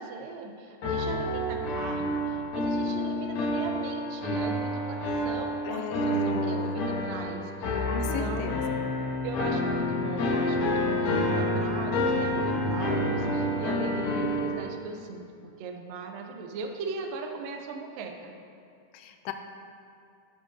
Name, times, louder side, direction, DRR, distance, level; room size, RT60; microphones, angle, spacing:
voice 1, 0.0-8.6 9.2-15.2 15.6-18.3, right 4 dB, 75° right, 3 dB, 2.1 m, -39 dB
sound 1, 0.8-14.5, left 1 dB, 65° left, 1.8 m, -28 dB
voice 2, 5.6-6.8 7.9-8.9 18.9-19.3, left 7 dB, 85° left, 6 dB, 2.7 m, -35 dB
14.5 x 7.7 x 2.8 m, 2.4 s
omnidirectional pair, 4.6 m